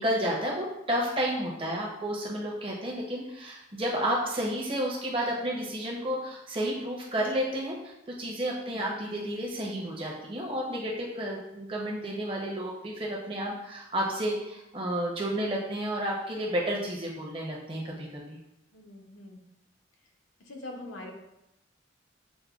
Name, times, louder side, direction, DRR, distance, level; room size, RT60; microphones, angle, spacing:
voice 1, 0.0-18.4, equal, 25° right, -2 dB, 0.6 m, -31 dB
voice 2, 18.7-19.4 20.4-21.1, left 2 dB, 85° left, 0 dB, 0.7 m, -43 dB
6.1 x 2.2 x 2.3 m, 0.87 s
head